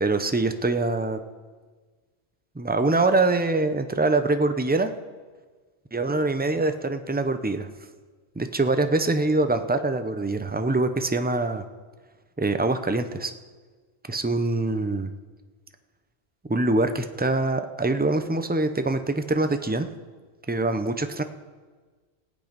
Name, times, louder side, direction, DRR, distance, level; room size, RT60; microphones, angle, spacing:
voice 1, 0.0-1.2 2.6-4.9 5.9-7.7 8.4-11.6 12.4-13.3 14.1-15.1 16.5-19.9 20.5-21.2, right 2 dB, 15° right, 8 dB, 0.4 m, -24 dB
18.0 x 8.3 x 5.2 m, 1.4 s
omnidirectional pair, 1.1 m